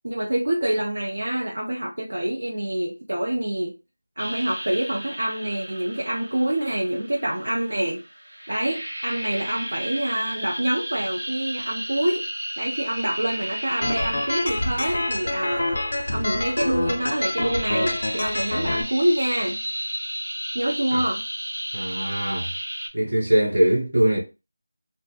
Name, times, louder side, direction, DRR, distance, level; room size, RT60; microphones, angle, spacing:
voice 1, 0.0-3.7 4.2-8.0 8.5-12.3 12.6-15.8 16.1-19.6 20.5-21.2, right 1 dB, 55° right, 0.4 m, -26 dB
sound 1, 4.2-22.9, equal, 75° right, 0.8 m, -34 dB
sound 2, 13.8-18.8, left 1 dB, 35° left, 0.4 m, -27 dB
voice 2, 21.7-22.5 22.9-24.2, right 1 dB, 40° right, 1.0 m, -21 dB
2.1 x 2.0 x 3.2 m
figure-of-eight pair, 180°, 0 cm